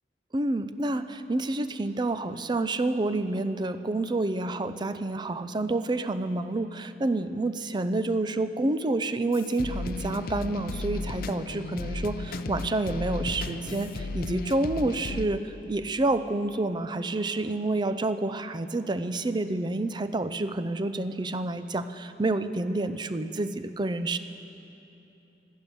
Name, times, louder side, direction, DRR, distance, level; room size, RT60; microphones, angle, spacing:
voice 1, 0.3-24.2, right 2 dB, 25° right, 11 dB, 0.5 m, -28 dB
sound 1, 9.3-15.3, left 2 dB, 55° left, 0.5 m, -34 dB
16.5 x 12.0 x 6.8 m, 2.9 s
head